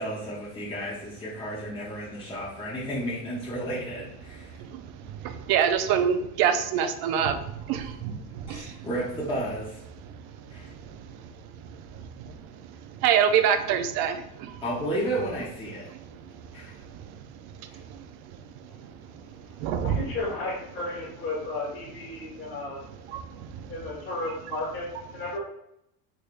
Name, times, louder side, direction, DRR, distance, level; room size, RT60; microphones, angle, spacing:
voice 1, 0.0-4.6 8.5-9.8 10.5-10.7 14.6-15.9 16.5-16.7 17.7-17.8, right 1 dB, 10° left, -6 dB, 0.7 m, -32 dB
voice 2, 4.5-8.9 10.0-14.6 15.9-20.0 22.1-22.6 22.9-23.7, right 8 dB, 60° right, 9 dB, 0.5 m, -29 dB
voice 3, 19.8-22.8 23.7-25.4, left 2 dB, 30° left, -7 dB, 1.5 m, -34 dB
3.5 x 3.1 x 2.4 m, 0.79 s
supercardioid pair, 110°, 43 cm